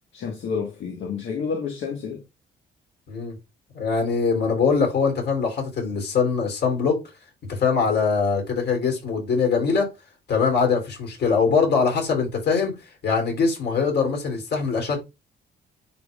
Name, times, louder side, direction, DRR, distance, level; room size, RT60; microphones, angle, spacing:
voice 1, 0.1-2.2, left 5 dB, 70° left, 1.4 m, -29 dB
voice 2, 3.7-7.0 7.5-9.9 10.3-12.8 13.0-15.0, left 5 dB, 55° left, 3.2 m, -22 dB
10.5 x 3.7 x 2.4 m
cardioid pair, 90°, 20 cm